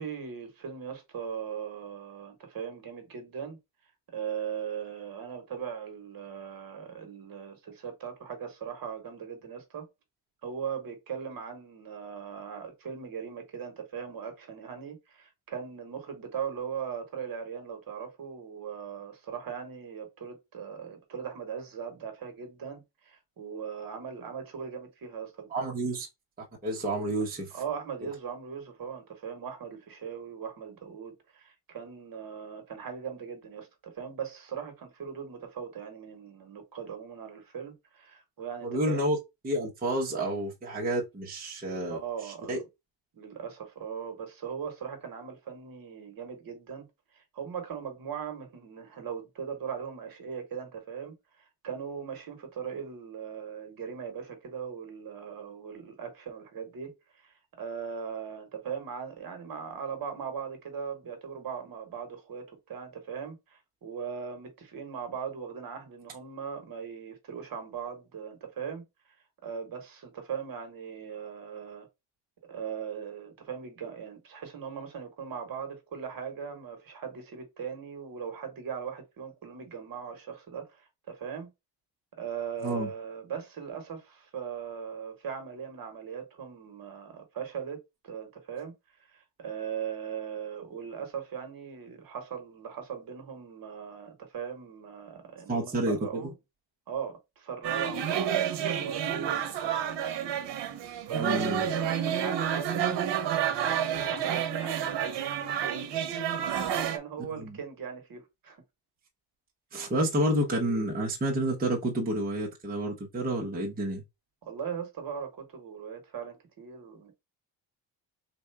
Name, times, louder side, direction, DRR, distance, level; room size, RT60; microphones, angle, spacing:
voice 1, 0.0-3.6 4.1-9.9 10.4-25.5 27.5-39.1 41.9-42.6 43.1-46.9 47.1-68.8 69.4-71.9 72.5-81.5 82.2-88.7 89.1-96.3 96.9-99.8 101.0-105.9 106.6-108.6 114.4-117.1, right 7 dB, 50° right, 1.2 m, -39 dB
voice 2, 25.5-26.1 26.6-27.6 38.6-39.2 39.4-42.6 82.6-82.9 95.5-96.3 101.2-101.7 107.4-107.6 109.7-114.0, right 1 dB, 20° right, 0.9 m, -30 dB
sound 1, 97.6-107.0, right 9 dB, 75° right, 0.8 m, -30 dB
3.3 x 2.6 x 4.5 m
wide cardioid pair, 165°, 43 cm